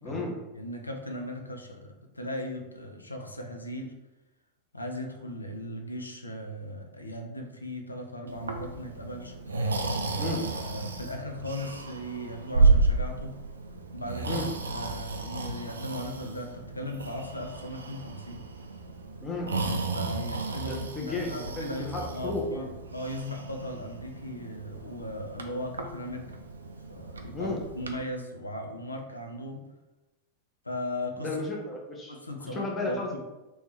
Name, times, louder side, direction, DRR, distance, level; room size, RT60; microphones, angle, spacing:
voice 1, 0.0-0.4 10.2-10.4 14.3-14.5 19.2-19.5 20.6-22.6 27.3-27.6 31.2-33.2, left 2 dB, 20° left, -2 dB, 1.1 m, -33 dB
voice 2, 0.5-3.9 4.7-9.3 10.2-13.3 13.9-18.4 19.9-26.2 26.9-29.6 30.6-31.4 32.1-33.2, left 1 dB, 80° left, 3 dB, 0.6 m, -38 dB
Breathing, 8.3-28.0, right 3 dB, 75° right, 0.4 m, -32 dB
3.4 x 3.1 x 4.4 m, 1.0 s
figure-of-eight pair, 90°, 0 cm